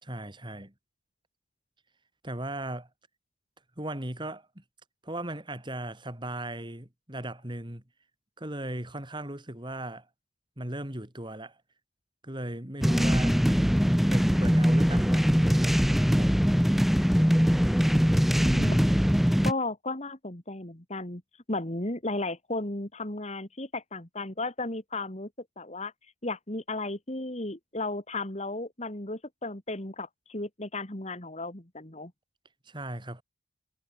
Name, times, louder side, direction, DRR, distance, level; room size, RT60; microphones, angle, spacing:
voice 1, 0.0-0.7 2.2-2.9 3.8-4.6 5.0-7.8 8.4-10.1 10.6-11.6 12.2-15.8 16.2-16.4 32.7-33.2, right 1 dB, 20° right, 2.7 m, -37 dB
sound 1, 12.8-19.5, equal, ahead, 0.7 m, -22 dB
voice 2, 18.4-18.9 19.4-21.2 21.5-25.3 25.6-25.9 26.2-32.1, left 2 dB, 30° left, 2.2 m, -34 dB
head